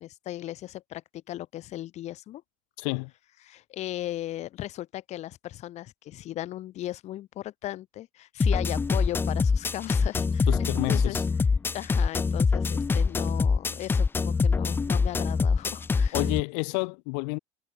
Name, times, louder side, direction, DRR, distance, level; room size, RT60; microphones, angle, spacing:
voice 1, 0.0-2.4 3.4-11.2 11.7-16.2, left 14 dB, 50° left, 5.0 m, -37 dB
voice 2, 2.8-3.1 10.5-11.2 16.1-17.4, left 39 dB, 85° left, 5.4 m, -29 dB
sound 1, 8.4-16.4, left 4 dB, 15° left, 0.6 m, -24 dB
cardioid pair, 145°, 15 cm